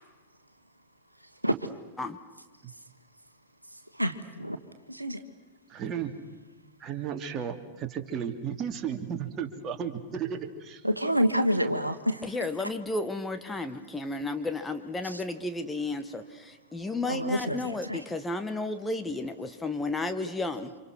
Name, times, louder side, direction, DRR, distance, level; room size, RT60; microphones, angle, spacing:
voice 1, 3.9-4.6 4.9-5.2 10.8-12.2 15.0-15.2 17.1-18.0, equal, 85° right, 8 dB, 1.5 m, -28 dB
voice 2, 5.7-6.1 6.8-10.8, right 8 dB, 30° right, 5 dB, 2.6 m, -34 dB
voice 3, 12.2-20.7, left 2 dB, 10° left, 7 dB, 1.6 m, -33 dB
30.0 x 27.0 x 6.2 m, 1.2 s
figure-of-eight pair, 90°, 0 cm